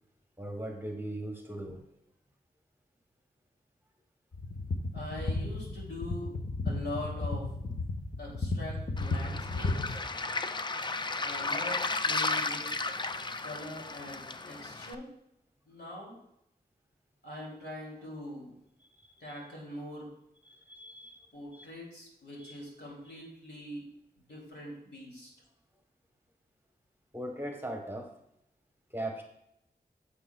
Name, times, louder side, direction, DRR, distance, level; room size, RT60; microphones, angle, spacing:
voice 1, 0.4-1.8 19.0-19.4 20.5-21.2 21.5-21.7 22.4-22.6 27.1-28.1 28.9-29.2, right 1 dB, 10° right, 2 dB, 1.0 m, -39 dB
sound 1, 4.3-10.0, left 2 dB, 55° left, 0.8 m, -34 dB
voice 2, 4.9-6.4 6.6-7.5 8.2-10.0 11.2-11.8 12.0-12.7 13.4-15.1 15.7-16.1 17.2-18.6 19.2-20.1 21.3-23.9 24.2-25.3, left 1 dB, 80° left, -3 dB, 2.7 m, -42 dB
Waves surf, 9.0-15.0, left 3 dB, 25° left, 0.4 m, -34 dB
9.6 x 7.1 x 2.3 m, 0.79 s
wide cardioid pair, 85°, 17 cm